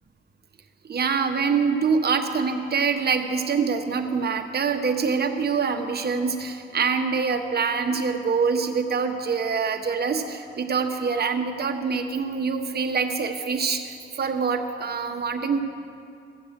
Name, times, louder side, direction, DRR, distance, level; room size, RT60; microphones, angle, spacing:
voice 1, 0.9-15.6, right 5 dB, 55° right, 5 dB, 1.1 m, -25 dB
15.0 x 7.7 x 8.1 m, 2.5 s
cardioid pair, 80°, 20 cm